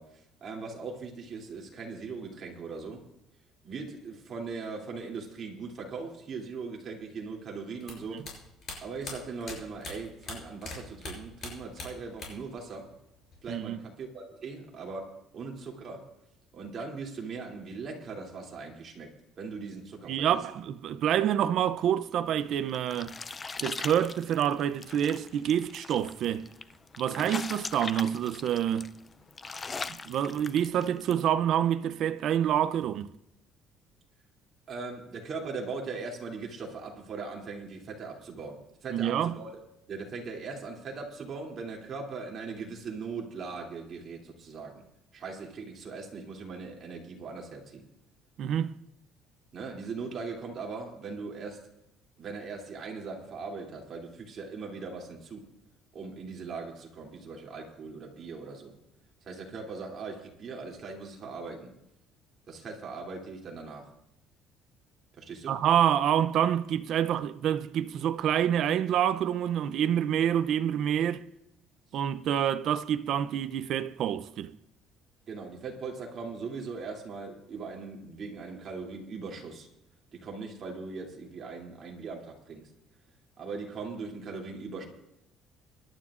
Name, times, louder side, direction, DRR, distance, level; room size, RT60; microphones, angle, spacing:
voice 1, 0.0-3.1 3.6-8.2 8.8-12.9 13.4-15.1 15.3-16.0 16.5-19.1 19.4-20.4 27.1-27.4 34.7-39.6 39.9-44.8 45.1-47.8 49.5-51.7 52.2-55.5 55.9-58.7 59.2-61.7 62.5-63.9 65.1-65.6 75.3-79.7 80.1-82.7 83.4-84.8, right 4 dB, 40° right, 2.8 m, -40 dB
sound 1, 7.8-10.8 11.0-12.5 12.8-13.6, left 4 dB, 40° left, 5.7 m, -41 dB
voice 2, 13.5-13.8 20.1-23.2 23.6-26.5 27.0-28.9 30.1-33.1 38.9-39.3 48.4-48.7 65.5-71.2 71.9-74.5, right 10 dB, 55° right, 0.5 m, -27 dB
sound 2, 22.3-31.2, left 4 dB, 20° left, 0.4 m, -41 dB
24.5 x 12.0 x 2.5 m
cardioid pair, 150°, 0 cm